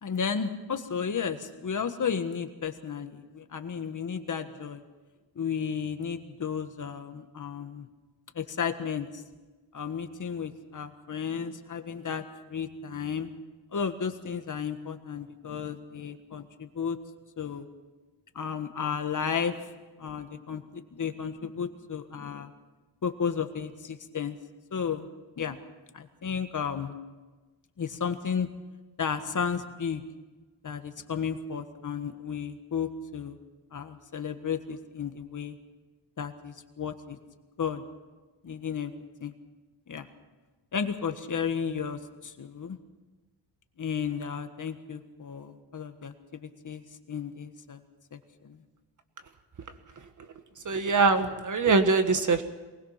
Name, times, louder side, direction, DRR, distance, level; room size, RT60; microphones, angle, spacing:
voice 1, 0.0-4.8 5.3-7.9 8.3-9.2 9.7-13.3 13.7-17.0 17.4-17.7 18.3-19.5 20.0-22.5 23.0-24.4 24.7-25.1 25.4-25.6 25.9-27.0 27.8-28.5 29.0-30.0 30.6-33.4 33.7-35.5 36.2-37.2 37.6-37.8 38.4-38.9 39.2-39.3 39.9-40.1 40.7-42.8 43.8-46.8 47.1-47.8 48.1-48.6, left 6 dB, 40° left, 7 dB, 1.5 m, -33 dB
voice 2, 50.6-52.4, right 4 dB, 40° right, 8 dB, 1.5 m, -23 dB
23.5 x 20.0 x 5.8 m, 1.2 s
cardioid pair, 130°, 45 cm